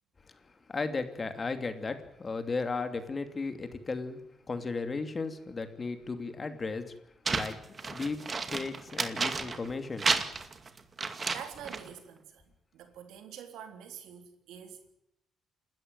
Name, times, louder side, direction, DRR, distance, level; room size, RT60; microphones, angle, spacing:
voice 1, 0.7-4.2 4.5-7.0 7.3-7.5 7.9-10.1, left 4 dB, 30° left, 8 dB, 2.7 m, -35 dB
sound 1, 7.3-9.7 10.0-11.9, right 4 dB, 35° right, 2.3 m, -32 dB
voice 2, 11.3-12.5 12.7-14.9, right 9 dB, 85° right, 6 dB, 3.5 m, -46 dB
28.5 x 13.5 x 9.1 m, 0.80 s
cardioid pair, 90°, 0 cm